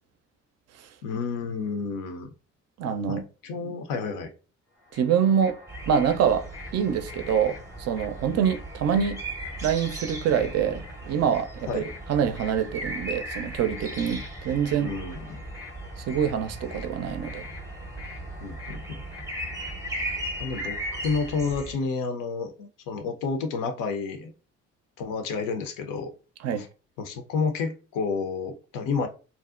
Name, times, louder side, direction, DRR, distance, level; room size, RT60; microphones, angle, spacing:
voice 1, 1.0-2.3 3.1-4.3 11.7-11.9 14.8-15.4 18.4-19.0 20.4-20.8 21.0-24.3 25.0-26.1 26.6-26.7 27.0-29.1, left 4 dB, 65° left, 0.6 m, -30 dB
voice 2, 2.8-3.2 4.9-5.6 5.9-6.4 6.7-9.2 9.6-11.8 12.1-14.9 16.1-17.4 26.4-26.7, right 8 dB, 45° right, 0.5 m, -25 dB
sound 1, 4.8-21.8, left 3 dB, 90° left, 1.0 m, -46 dB
sound 2, 5.7-21.8, right 1 dB, 10° right, 0.7 m, -37 dB
2.5 x 2.1 x 2.4 m
hypercardioid pair, 50°, 36 cm